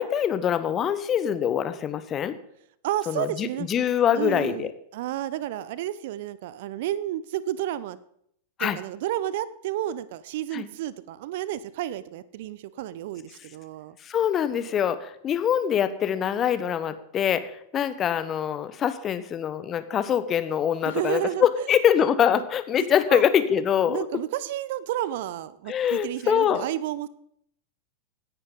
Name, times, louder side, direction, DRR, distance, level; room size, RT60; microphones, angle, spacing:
voice 1, 0.0-2.4 3.1-4.7 8.6-8.8 10.5-10.7 14.0-24.0 25.7-26.6, left 9 dB, 25° left, 12 dB, 1.0 m, -24 dB
voice 2, 2.8-3.7 4.2-8.0 8.6-14.0 20.9-21.7 22.3-22.4 22.8-23.2 23.9-27.1, right 12 dB, 50° right, 18 dB, 0.6 m, -31 dB
17.0 x 10.5 x 3.9 m, 0.71 s
figure-of-eight pair, 90°, 0 cm